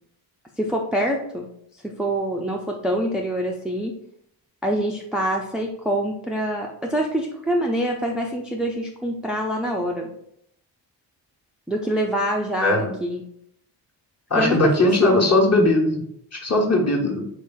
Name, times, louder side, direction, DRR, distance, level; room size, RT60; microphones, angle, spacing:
voice 1, 0.6-1.5 1.8-3.9 4.6-10.2 11.7-13.2 14.4-15.2, right 1 dB, ahead, 0 dB, 0.5 m, -25 dB
voice 2, 12.6-12.9 14.3-16.0 16.3-17.3, left 2 dB, 35° left, -1 dB, 1.3 m, -19 dB
3.5 x 2.6 x 3.9 m, 0.72 s
supercardioid pair, 50°, 46 cm